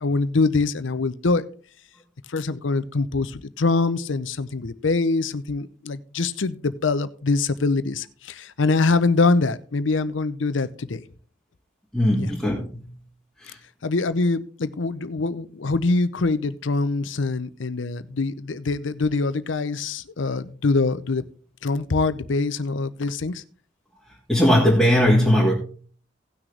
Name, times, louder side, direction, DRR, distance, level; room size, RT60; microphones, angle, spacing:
voice 1, 0.0-1.5 2.3-11.0 12.2-12.3 13.8-21.2 21.6-23.4, left 3 dB, 85° left, 0.7 m, -24 dB
voice 2, 11.9-12.9 13.4-13.6 24.3-25.5, equal, ahead, 1.8 m, -19 dB
18.0 x 6.2 x 3.3 m
head